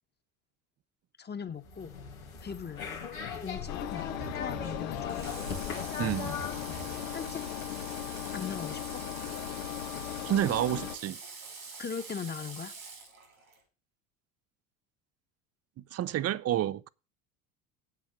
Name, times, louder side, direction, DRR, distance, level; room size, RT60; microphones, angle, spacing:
voice 1, 1.2-2.0 2.4-2.9 3.4-4.1 4.4-5.3 7.1-7.4 8.3-9.0 11.8-12.7, left 6 dB, 25° left, 1.4 m, -39 dB
sound 1, 1.6-7.0, left 5 dB, 90° left, 2.4 m, -39 dB
Engine, 3.7-11.0, left 12 dB, 70° left, 1.3 m, -38 dB
Water / Water tap faucet, 5.1-13.6, right 4 dB, 85° right, 3.0 m, -45 dB
voice 2, 6.0-6.3 10.2-11.2 15.8-16.9, right 12 dB, 35° right, 0.7 m, -29 dB
8.3 x 7.5 x 6.8 m
hypercardioid pair, 65°, 41 cm